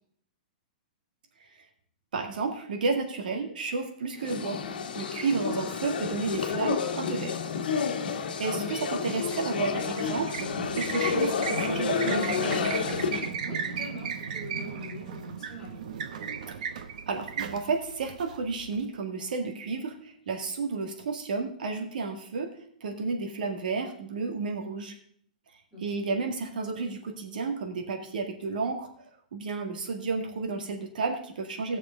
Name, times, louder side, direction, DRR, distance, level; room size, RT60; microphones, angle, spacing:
voice 1, 2.1-4.6 5.0-7.4 8.4-10.5 10.7-12.6 17.1-22.5 22.8-24.9 25.8-28.9 29.3-31.8, right 4 dB, 70° right, 4 dB, 2.1 m, -31 dB
sound 1, 4.2-13.4, left 6 dB, 90° left, 1.3 m, -30 dB
sound 2, 9.5-18.8, right 7 dB, 55° right, 1.0 m, -36 dB
voice 2, 13.4-15.8 25.7-26.0, equal, 10° left, -5 dB, 2.9 m, -43 dB
18.5 x 6.6 x 3.8 m, 0.63 s
hypercardioid pair, 180°, 5 cm